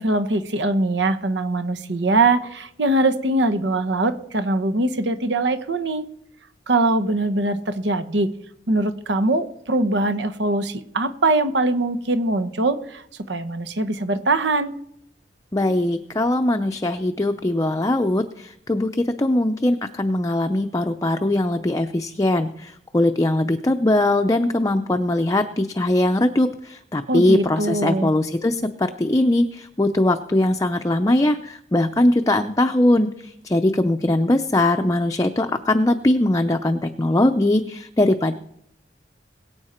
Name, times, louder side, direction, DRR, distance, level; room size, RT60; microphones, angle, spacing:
voice 1, 0.0-6.1 6.7-8.3 8.7-13.0 13.3-14.7 27.1-28.1, right 2 dB, 85° right, 10 dB, 1.0 m, -22 dB
voice 2, 15.5-38.3, left 1 dB, 20° left, 6 dB, 0.5 m, -21 dB
22.0 x 8.1 x 4.4 m, 0.72 s
head